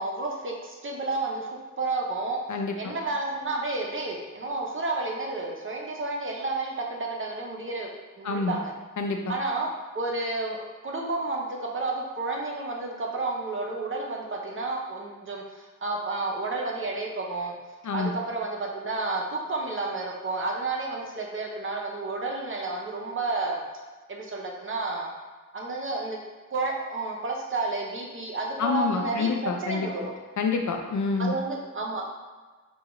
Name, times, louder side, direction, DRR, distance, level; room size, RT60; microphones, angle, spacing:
voice 1, 0.0-2.4 2.8-7.9 8.2-8.7 9.3-9.7 9.9-17.6 17.9-23.6 24.1-25.1 25.5-26.2 26.5-30.1 31.2-32.0, right 3 dB, 40° right, -1 dB, 0.6 m, -31 dB
voice 2, 2.5-2.9 8.2-8.6 9.0-9.4 17.8-18.1 28.6-29.9 30.4-31.3, left 4 dB, 65° left, 3 dB, 0.5 m, -27 dB
4.6 x 2.3 x 3.0 m, 1.4 s
wide cardioid pair, 95°, 32 cm